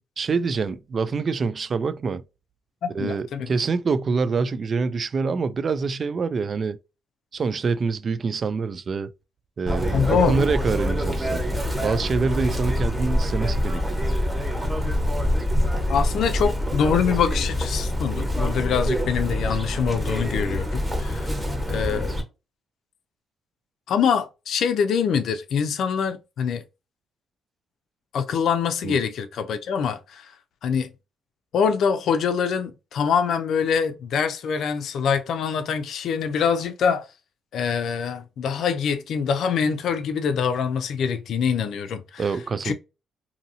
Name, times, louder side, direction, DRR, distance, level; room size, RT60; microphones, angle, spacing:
voice 1, 0.2-2.2 2.9-6.8 7.3-9.1 9.6-14.0 28.8-29.0 42.2-42.7, right 4 dB, 45° right, 0.3 m, -26 dB
voice 2, 2.8-3.5 9.9-10.4 15.9-21.4 21.7-22.2 23.9-26.6 28.1-30.3 30.6-30.9 31.5-37.1 37.5-42.2 42.6-42.7, left 6 dB, 70° left, 0.5 m, -24 dB
Chirp tweet, 9.7-22.2, left 1 dB, 10° right, 1.1 m, -25 dB
2.7 x 2.7 x 2.7 m
cardioid pair, 90°, 0 cm